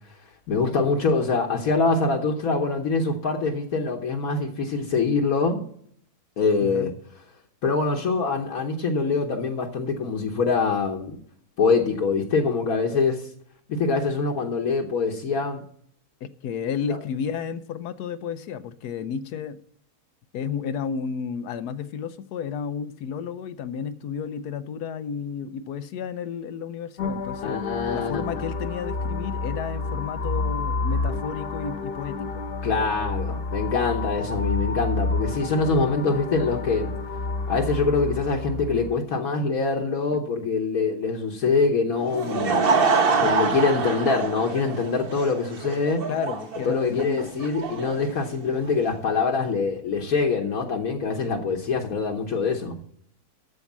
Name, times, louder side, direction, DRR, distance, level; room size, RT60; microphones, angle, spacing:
voice 1, 0.5-5.6 6.4-6.9 7.6-11.2 11.6-13.3 13.7-15.6 27.4-28.4 32.6-36.9 37.5-42.7 43.2-46.1 46.7-52.8, left 4 dB, 65° left, 1.4 m, -24 dB
voice 2, 16.2-19.6 20.3-27.6 27.9-32.4 46.1-47.3, left 7 dB, 85° left, 1.2 m, -32 dB
sound 1, 27.0-38.9, left 3 dB, 40° left, 1.2 m, -29 dB
Laughter / Crowd, 42.0-48.9, right 4 dB, 40° right, 1.1 m, -26 dB
13.5 x 4.8 x 7.2 m
omnidirectional pair, 1.7 m